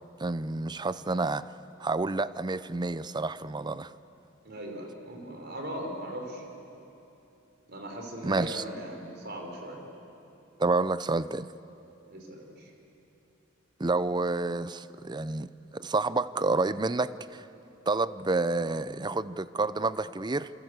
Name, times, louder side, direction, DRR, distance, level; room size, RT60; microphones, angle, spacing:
voice 1, 0.2-1.5 1.8-3.9 8.2-8.6 10.6-11.5 13.8-17.4 17.9-20.5, right 3 dB, 20° right, 15 dB, 0.6 m, -29 dB
voice 2, 4.4-6.4 7.7-9.8 12.1-12.7, equal, 55° right, 2 dB, 4.5 m, -39 dB
28.0 x 26.0 x 8.1 m, 2.9 s
head